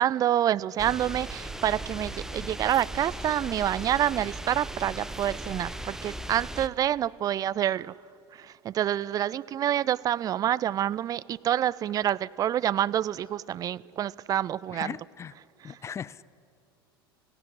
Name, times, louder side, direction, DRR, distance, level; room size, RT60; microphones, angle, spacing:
voice 1, 0.0-7.9 8.4-14.9, right 11 dB, 30° right, 0.5 m, -27 dB
sound 1, 0.8-6.7, right 1 dB, 5° right, 0.9 m, -38 dB
sound 2, 3.6-3.8 4.8-5.2 6.2-6.5 7.6-7.9 9.0-9.3 10.4-10.6 11.7-12.0 12.9-13.3, left 2 dB, 85° left, 2.7 m, -60 dB
voice 2, 14.7-15.3 15.6-16.2, left 7 dB, 20° left, 0.5 m, -38 dB
18.5 x 16.5 x 9.8 m
figure-of-eight pair, 75°, 13 cm